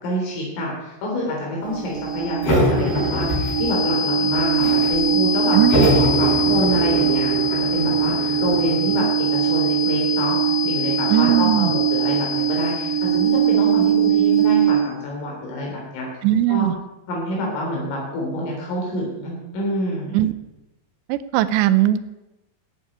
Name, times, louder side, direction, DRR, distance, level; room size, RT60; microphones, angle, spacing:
voice 1, 0.0-5.6 6.0-10.4 10.6-16.1 16.5-16.7 17.1-20.2, left 1 dB, 85° left, -3 dB, 6.2 m, -27 dB
sound 1, 1.2-15.1, right 6 dB, 45° right, 2.0 m, -21 dB
sound 2, 2.4-4.0 4.3-5.0 5.7-9.0, equal, 50° left, 7.3 m, -23 dB
voice 2, 5.5-5.9 11.1-11.7 16.2-16.7 20.1-20.3 21.1-22.0, right 13 dB, 80° right, 13 dB, 2.6 m, -18 dB
12.5 x 8.7 x 9.1 m, 0.99 s
omnidirectional pair, 5.6 m